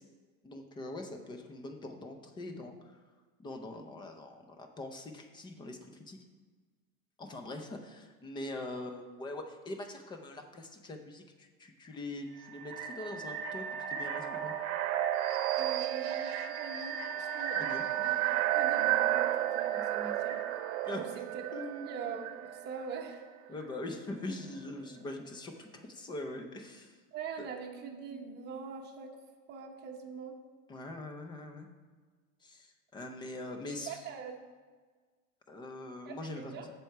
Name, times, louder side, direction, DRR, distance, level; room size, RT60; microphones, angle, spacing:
voice 1, 0.4-3.0 3.4-6.2 7.2-14.5 17.6-17.8 20.8-21.3 21.5-21.9 23.5-27.0 27.4-27.5 30.7-31.7 32.4-34.1 35.5-36.7, left 2 dB, 10° left, 6 dB, 0.5 m, -43 dB
sound 1, 12.4-23.1, right 11 dB, 60° right, 0.9 m, -33 dB
voice 2, 15.6-18.1 18.5-20.4 20.9-21.4 21.8-23.2 27.1-29.2 29.5-30.4 33.6-34.4 36.1-36.7, right 5 dB, 25° right, 2 dB, 1.0 m, -43 dB
7.6 x 4.6 x 6.6 m, 1.4 s
supercardioid pair, 145°, 41 cm